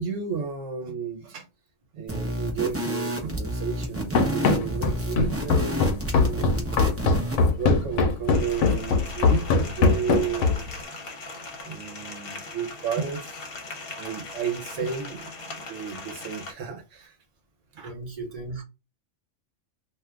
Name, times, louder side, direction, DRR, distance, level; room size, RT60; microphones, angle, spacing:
voice 1, 0.0-1.4 1.9-5.9 6.2-6.7 7.6-10.9 11.6-13.4 14.0-17.1 17.8-17.9 18.6-18.7, right 6 dB, 75° right, 1.0 m, -32 dB
sound 1, 2.1-7.5, right 1 dB, 15° right, 0.5 m, -30 dB
Run, 4.2-10.8, left 4 dB, 80° left, 0.9 m, -22 dB
sound 2, 8.3-16.5, left 3 dB, 55° left, 1.0 m, -39 dB
voice 2, 17.8-18.6, right 3 dB, 30° right, 1.0 m, -36 dB
2.5 x 2.4 x 3.2 m
omnidirectional pair, 1.3 m